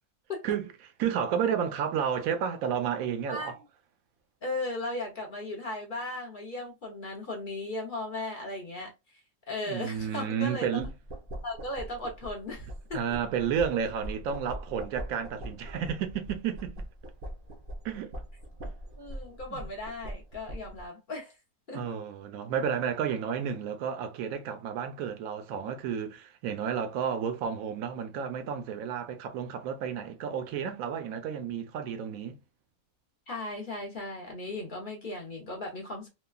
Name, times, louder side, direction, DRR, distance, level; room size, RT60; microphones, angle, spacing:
voice 1, 1.0-3.6 9.6-10.9 12.9-16.8 17.8-18.1 18.6-18.7 19.5-19.6 21.7-32.4, right 8 dB, 70° right, 0.9 m, -31 dB
voice 2, 4.4-8.9 9.5-10.7 11.4-13.2 19.0-21.3 21.7-21.9 33.3-36.1, left 2 dB, 50° left, 0.6 m, -36 dB
sound 1, 10.8-20.9, right 1 dB, 45° right, 0.7 m, -42 dB
3.1 x 2.2 x 2.2 m
omnidirectional pair, 1.7 m